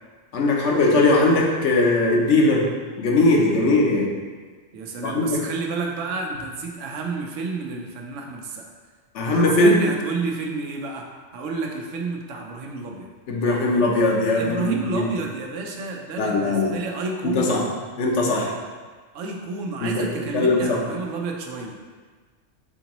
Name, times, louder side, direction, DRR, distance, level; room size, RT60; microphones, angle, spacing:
voice 1, 0.3-2.7 3.0-4.1 5.0-5.4 9.1-9.8 13.3-15.1 16.2-16.7 17.3-17.6 18.0-18.5 19.8-20.1 20.3-20.8, left 2 dB, 70° left, -1 dB, 1.0 m, -19 dB
voice 2, 4.7-8.6 9.3-11.1 11.3-13.1 14.4-17.6 19.1-21.8, right 3 dB, 90° right, 1 dB, 1.0 m, -30 dB
4.4 x 3.8 x 2.9 m, 1.4 s
omnidirectional pair, 1.3 m